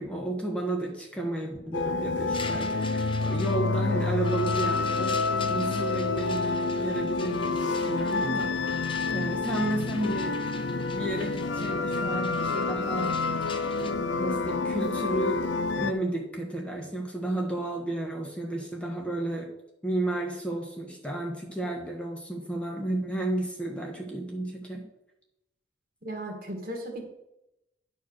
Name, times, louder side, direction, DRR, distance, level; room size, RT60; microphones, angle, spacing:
voice 1, 0.0-5.1 5.5-10.4 10.9-13.2 13.8-15.4 15.8-19.5 19.8-24.8, right 1 dB, 5° left, 0 dB, 1.2 m, -32 dB
sound 1, 1.7-15.9, left 3 dB, 80° left, 0.6 m, -28 dB
sound 2, 2.3-13.9, left 5 dB, 30° left, 0.6 m, -44 dB
voice 2, 26.0-27.0, right 1 dB, 50° right, 1 dB, 2.1 m, -36 dB
10.5 x 4.6 x 6.4 m, 0.87 s
head